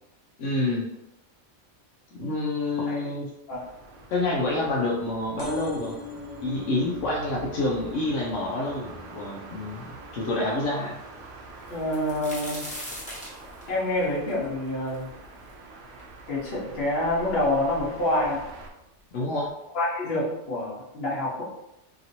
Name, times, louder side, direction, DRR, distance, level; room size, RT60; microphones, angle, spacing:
voice 1, 0.4-0.9 2.1-3.2 4.1-6.0 6.4-10.9 19.1-19.5, left 2 dB, 85° left, -3 dB, 1.0 m, -28 dB
sound 1, 3.5-18.7, right 3 dB, 65° right, 0.7 m, -45 dB
sound 2, 5.4-12.6 13.1-13.6 14.4-14.5 14.7-14.8 15.0-15.1, left 2 dB, 25° right, 0.6 m, -43 dB
voice 2, 11.7-12.7 13.7-15.1 16.3-18.4 19.7-21.4, left 1 dB, 55° left, -7 dB, 1.3 m, -27 dB
sound 3, 11.7-15.5 16.0-16.1 16.9-17.0 17.2-17.9 18.8-18.9 19.3-19.5, equal, 10° left, 0.6 m, -40 dB
3.0 x 2.8 x 2.6 m, 0.89 s
omnidirectional pair, 1.3 m